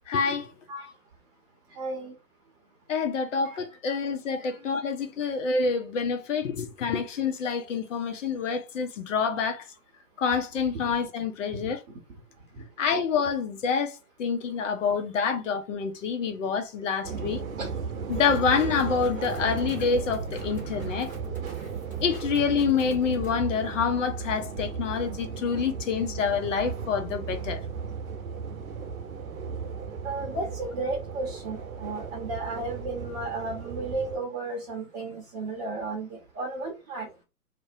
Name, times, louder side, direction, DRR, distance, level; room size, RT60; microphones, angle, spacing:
voice 1, 0.1-0.5 2.9-9.6 10.2-11.8 12.8-17.4 18.1-21.1 22.0-27.6, left 5 dB, 55° left, 0.7 m, -27 dB
voice 2, 1.8-2.1 3.9-4.0 4.4-4.7 17.6-17.7 30.0-37.1, right 2 dB, 25° right, 0.8 m, -34 dB
sound 1, 17.0-34.2, right 5 dB, 60° right, 0.8 m, -36 dB
sound 2, 18.1-23.3, right 5 dB, 5° left, 0.9 m, -39 dB
2.6 x 2.1 x 2.6 m
figure-of-eight pair, 120°, 46 cm